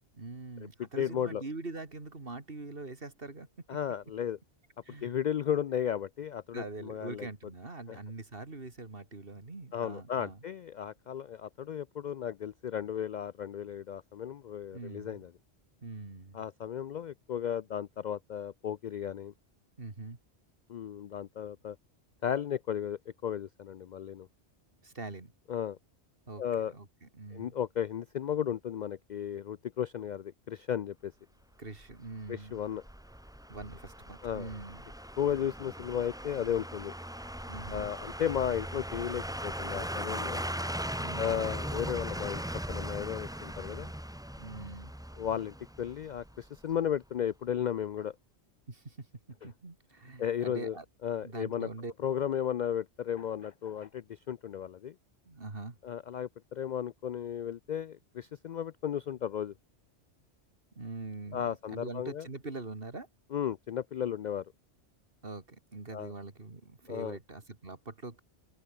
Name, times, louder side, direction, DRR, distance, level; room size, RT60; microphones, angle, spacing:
voice 1, 0.1-3.5 4.8-5.1 6.5-10.4 14.7-15.3 15.8-16.4 19.8-20.2 24.8-25.3 26.3-27.5 31.6-32.6 33.5-34.8 37.5-37.9 41.0-41.5 44.4-44.9 48.7-50.8 51.2-51.9 55.3-55.8 60.7-63.1 65.2-68.2, right 3 dB, 55° right, 3.0 m, -43 dB
voice 2, 1.0-1.4 3.7-4.4 5.0-7.3 7.9-8.0 9.7-15.3 16.3-19.3 20.7-21.8 22.2-24.3 25.5-25.8 26.4-26.7 27.3-31.1 32.3-32.8 34.2-34.5 35.2-36.9 37.7-40.4 41.2-42.4 42.7-43.9 45.2-48.1 50.2-50.8 51.0-51.7 52.0-54.9 55.8-59.5 61.3-62.3 63.3-64.4 65.9-66.1 66.9-67.2, left 9 dB, 60° left, 0.5 m, -34 dB
sound 1, 31.8-46.7 47.0-47.1, equal, 5° right, 1.2 m, -39 dB
open air
omnidirectional pair, 1.2 m